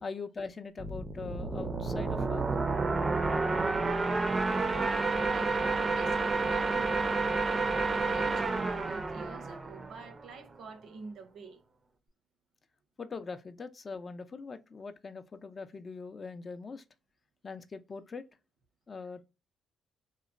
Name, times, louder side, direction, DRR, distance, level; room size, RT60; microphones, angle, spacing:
voice 1, 0.0-2.4 13.0-16.8 17.4-18.2 18.9-19.2, left 4 dB, 35° left, 0.4 m, -42 dB
sound 1, 0.8-10.3, right 3 dB, 30° right, 0.4 m, -30 dB
voice 2, 4.7-11.6, right 4 dB, 70° right, 0.7 m, -47 dB
2.9 x 2.1 x 2.4 m
cardioid pair, 90°, 0 cm